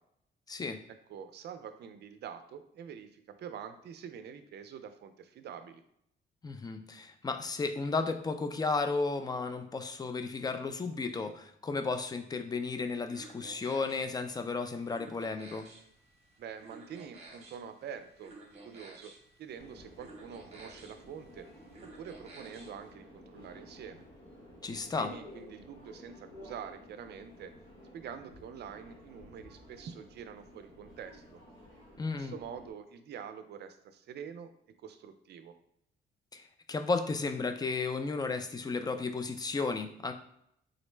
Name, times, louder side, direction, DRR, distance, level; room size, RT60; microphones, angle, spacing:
voice 1, 1.1-5.8 16.4-18.3 18.6-19.1 19.4-21.4 22.0-24.0 24.9-27.5 27.9-31.4 32.1-34.5 34.8-35.5, right 7 dB, 55° right, 9 dB, 0.4 m, -46 dB
voice 2, 6.4-15.7 24.6-25.1 32.0-32.3 36.3-40.1, left 4 dB, 20° left, 7 dB, 0.4 m, -33 dB
sound 1, 12.7-22.9, right 2 dB, 30° right, 0.9 m, -54 dB
Subway metro underground, 19.6-32.7, left 1 dB, 80° left, 1.3 m, -53 dB
3.8 x 2.0 x 3.2 m, 0.74 s
cardioid pair, 90°, 20 cm